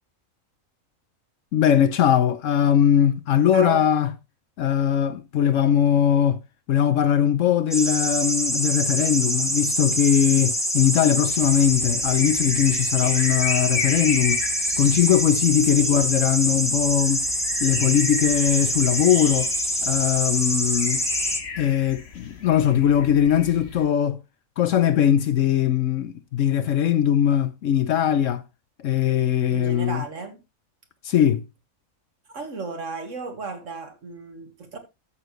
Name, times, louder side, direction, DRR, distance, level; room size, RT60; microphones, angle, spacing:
voice 1, 1.5-4.1 4.6-6.4 6.7-14.4 14.8-17.2 17.6-19.5 19.8-21.0 21.6-24.2 24.6-28.4 28.8-30.0 31.0-31.4, left 9 dB, 70° left, 1.0 m, -20 dB
voice 2, 3.5-3.9 15.8-16.0 29.5-30.4 32.3-34.8, right 3 dB, 65° right, 2.1 m, -34 dB
sound 1, 7.7-21.4, equal, ahead, 1.1 m, -25 dB
sound 2, 11.3-23.9, left 5 dB, 50° left, 1.4 m, -36 dB
13.0 x 7.0 x 3.1 m
omnidirectional pair, 1.4 m